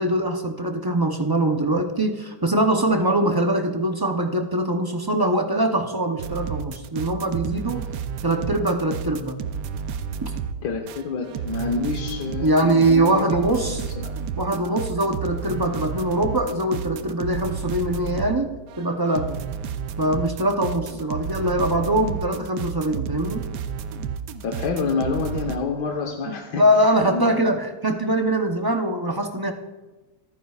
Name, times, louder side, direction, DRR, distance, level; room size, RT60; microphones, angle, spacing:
voice 1, 0.0-7.9 8.2-9.4 10.2-10.3 12.4-13.8 14.4-19.4 20.0-23.4 26.3-29.5, right 1 dB, 35° right, 4 dB, 0.3 m, -22 dB
sound 1, 6.2-18.4 18.7-25.6, right 7 dB, 80° right, 1.3 m, -31 dB
voice 2, 10.6-13.9 24.4-26.6 27.1-27.6, left 4 dB, 85° left, 1 dB, 1.7 m, -28 dB
25.5 x 9.5 x 2.4 m, 1.2 s
omnidirectional pair, 1.8 m